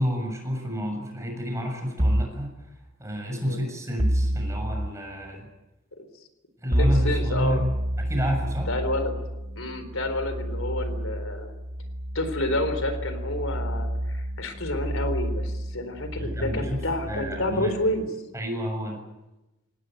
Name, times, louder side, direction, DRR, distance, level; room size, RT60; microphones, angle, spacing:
voice 1, 0.0-2.5 3.0-5.5 6.6-8.7 16.2-16.8 17.1-17.7 18.3-19.0, equal, 15° right, 2 dB, 7.0 m, -30 dB
sound 1, 2.0-2.4 4.0-4.9 6.7-18.1, equal, 30° right, 1.7 m, -29 dB
voice 2, 6.8-7.6 8.7-9.2 9.5-11.5 12.1-18.1, left 1 dB, 85° left, 10 dB, 4.1 m, -29 dB
26.5 x 19.0 x 9.2 m, 1.0 s
head